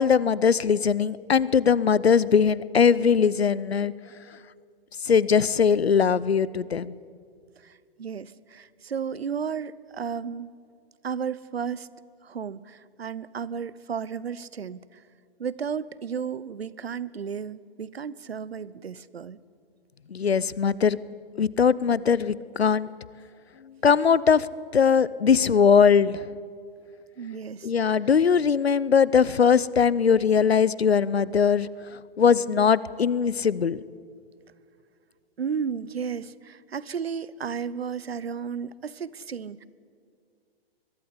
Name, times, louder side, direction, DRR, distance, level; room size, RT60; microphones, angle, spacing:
voice 1, 0.0-3.9 5.0-6.9 20.1-21.0 21.4-22.9 23.6-24.5 24.7-26.3 27.6-31.7 32.2-33.8, left 6 dB, 90° left, 20 dB, 0.7 m, -20 dB
voice 2, 7.6-10.5 11.0-11.9 12.2-15.0 15.4-19.4 27.2-27.7 35.4-39.6, right 6 dB, 80° right, 19 dB, 0.8 m, -33 dB
22.0 x 12.0 x 9.7 m, 2.2 s
figure-of-eight pair, 120°, 30 cm